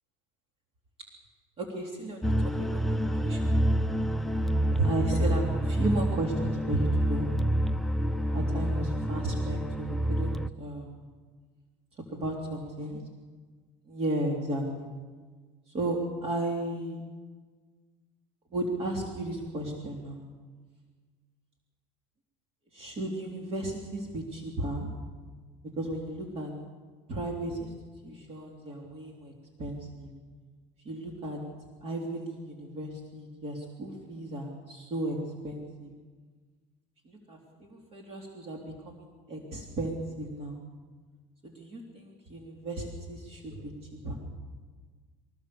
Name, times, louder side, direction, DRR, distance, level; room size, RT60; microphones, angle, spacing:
voice 1, 1.6-3.6 4.7-7.3 8.3-11.1 12.1-13.0 13.9-14.9 15.7-17.0 18.5-20.2 22.7-24.9 25.8-26.5 27.1-27.7 28.0-29.3 29.6-30.1 30.8-31.4 31.8-35.2 35.4-35.9 37.1-40.6 41.4-44.2, right 1 dB, 40° right, 0 dB, 3.4 m, -34 dB
sound 1, 2.2-10.5, right 1 dB, ahead, 0.6 m, -28 dB
23.0 x 19.0 x 7.0 m, 1.4 s
cardioid pair, 125°, 15 cm